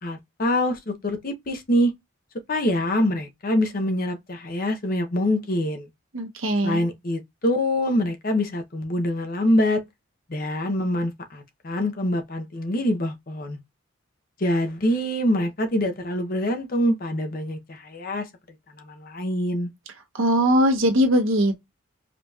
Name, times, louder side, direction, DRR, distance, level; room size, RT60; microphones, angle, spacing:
voice 1, 0.0-1.9 2.5-5.9 6.6-9.8 10.3-13.6 14.4-18.2 18.8-19.7, left 1 dB, 45° left, 0.7 m, -25 dB
voice 2, 6.1-6.8 20.1-21.6, equal, 75° right, 1.1 m, -20 dB
5.0 x 2.8 x 2.3 m
head